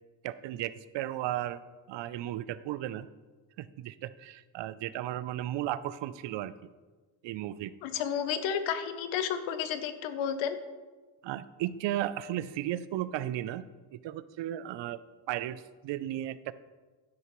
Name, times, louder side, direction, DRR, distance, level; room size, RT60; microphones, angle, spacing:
voice 1, 0.2-1.6 1.9-3.1 3.6-6.5 7.2-7.7 11.2-13.7 13.9-15.0 15.3-16.5, right 13 dB, 70° right, 16 dB, 0.6 m, -35 dB
voice 2, 7.8-10.6, left 8 dB, 90° left, 10 dB, 0.9 m, -31 dB
11.5 x 10.0 x 3.1 m, 1.3 s
supercardioid pair, 80°, 45 cm